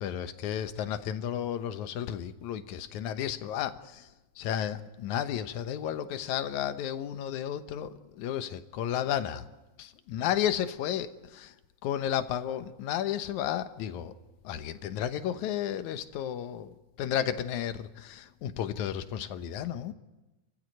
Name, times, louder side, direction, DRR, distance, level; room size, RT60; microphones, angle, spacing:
voice 1, 0.0-4.1 4.4-9.4 9.8-11.5 11.8-14.1 14.4-19.9, left 10 dB, 70° left, 2.4 m, -33 dB
29.5 x 15.5 x 9.2 m
omnidirectional pair, 3.7 m